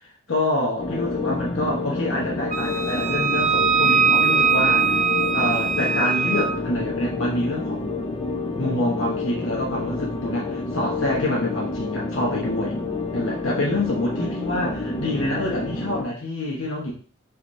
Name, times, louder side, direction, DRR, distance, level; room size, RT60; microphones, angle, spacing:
voice 1, 0.3-5.0 5.3-7.9 8.6-12.8 13.1-16.9, left 1 dB, 75° left, -4 dB, 1.0 m, -26 dB
sound 1, 0.8-16.0, left 3 dB, 25° left, 0.4 m, -29 dB
Wind instrument woodwind instrument, 2.5-6.5, right 6 dB, 40° right, 0.6 m, -21 dB
3.9 x 3.1 x 2.6 m, 0.40 s
head